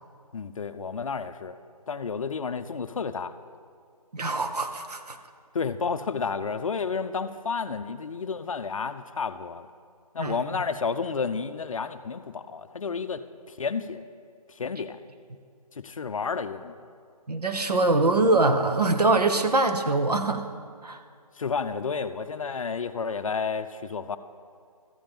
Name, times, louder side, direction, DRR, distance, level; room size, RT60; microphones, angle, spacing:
voice 1, 0.3-1.5 1.9-3.3 5.5-9.7 10.1-13.2 13.6-14.0 14.6-15.0 15.8-16.7 21.4-24.2, left 5 dB, 60° left, 11 dB, 0.5 m, -31 dB
voice 2, 4.1-5.2 10.2-10.4 17.3-20.5 20.8-21.0, right 2 dB, 85° right, 7 dB, 0.9 m, -23 dB
14.0 x 7.4 x 3.5 m, 2.2 s
figure-of-eight pair, 165°, 20 cm